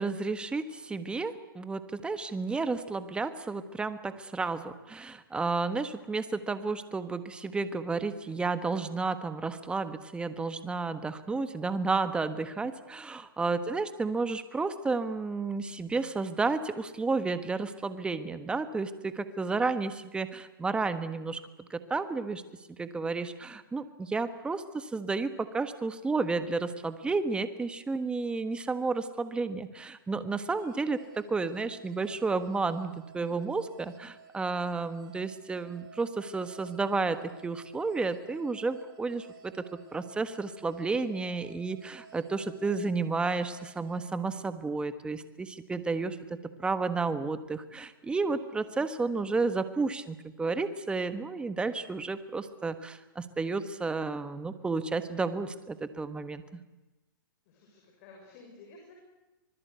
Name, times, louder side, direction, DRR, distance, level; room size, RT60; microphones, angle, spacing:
voice 1, 0.0-22.4 22.7-39.5 39.9-56.6, right 4 dB, 10° right, 11 dB, 1.4 m, -32 dB
voice 2, 13.4-14.0 57.5-58.9, left 3 dB, 45° left, 1 dB, 6.9 m, -54 dB
sound 1, 30.5-44.9, right 6 dB, 55° right, 2.9 m, -55 dB
25.5 x 20.0 x 8.3 m, 1.1 s
hypercardioid pair, 140°, 12 cm